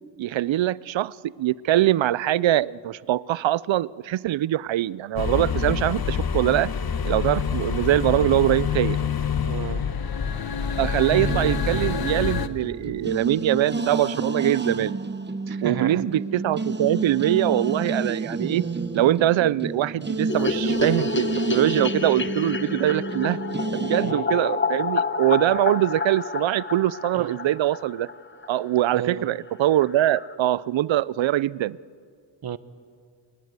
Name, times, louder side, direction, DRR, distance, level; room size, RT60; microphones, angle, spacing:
voice 1, 0.2-6.7 7.0-9.0 10.8-15.0 15.6-18.7 18.9-23.4 23.7-28.1 28.5-31.8, right 13 dB, 80° right, 21 dB, 0.6 m, -23 dB
sound 1, 5.2-12.5, left 6 dB, 50° left, 1.3 m, -26 dB
voice 2, 9.5-9.8 15.5-16.0 24.0-24.3 27.1-27.4 28.9-29.3 32.4-32.6, right 8 dB, 55° right, 14 dB, 1.1 m, -32 dB
sound 2, 11.1-24.1, right 3 dB, 25° right, 1.1 m, -30 dB
sound 3, 20.3-28.5 28.8-28.9 29.1-29.2 29.5-29.6 29.8-30.4, left 4 dB, 25° left, 1.1 m, -29 dB
27.5 x 22.0 x 8.1 m, 2.2 s
cardioid pair, 90°, 45 cm